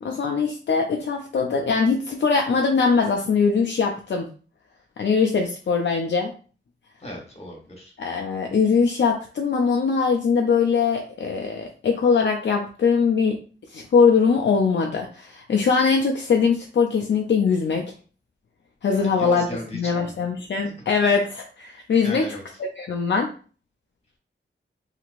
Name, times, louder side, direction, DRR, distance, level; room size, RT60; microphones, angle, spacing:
voice 1, 0.0-4.3 5.0-6.3 8.0-13.4 13.7-17.9 18.8-19.5 19.7-22.4 22.8-23.3, left 5 dB, 60° left, 2 dB, 0.4 m, -21 dB
voice 2, 7.0-7.9 18.9-20.1 22.0-22.4, equal, 30° left, 0 dB, 1.2 m, -36 dB
2.9 x 2.8 x 2.5 m, 0.40 s
wide cardioid pair, 85°, 20 cm